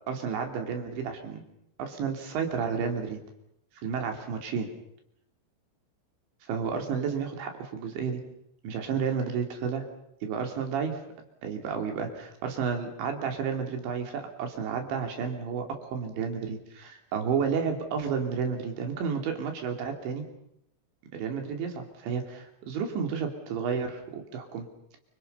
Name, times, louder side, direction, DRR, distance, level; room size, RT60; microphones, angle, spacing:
voice 1, 0.1-1.4 1.8-3.2 3.8-4.7 6.4-8.2 8.6-9.9 10.2-11.0 11.4-20.2 21.1-24.7, right 6 dB, 65° right, 4 dB, 5.0 m, -31 dB
28.5 x 25.5 x 5.6 m, 0.78 s
omnidirectional pair, 5.9 m